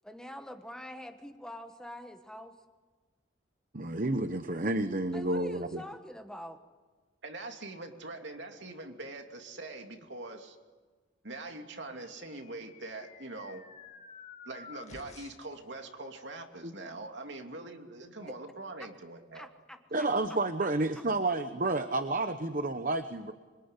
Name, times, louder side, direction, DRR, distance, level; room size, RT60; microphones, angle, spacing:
voice 1, 0.0-2.6 5.1-6.6 18.2-18.3 19.3-20.7, equal, 5° left, 6 dB, 1.3 m, -45 dB
voice 2, 3.7-5.8 16.6-16.7 19.9-23.3, right 2 dB, 45° right, 9 dB, 1.0 m, -30 dB
voice 3, 7.2-10.6 11.2-13.6 14.4-19.5, right 2 dB, 70° right, 4 dB, 2.8 m, -43 dB
sound 1, 11.9-15.6, left 5 dB, 35° left, 1.4 m, -51 dB
26.0 x 23.0 x 9.9 m, 1.4 s
head